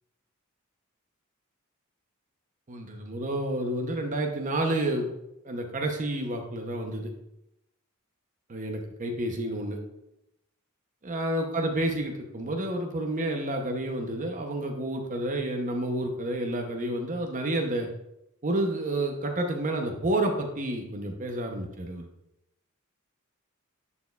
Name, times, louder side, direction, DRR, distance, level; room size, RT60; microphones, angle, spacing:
voice 1, 2.7-5.1 5.4-7.1 8.5-9.8 11.0-17.9 18.4-22.1, right 1 dB, 40° right, 3 dB, 0.7 m, -30 dB
10.5 x 4.3 x 2.3 m, 0.83 s
head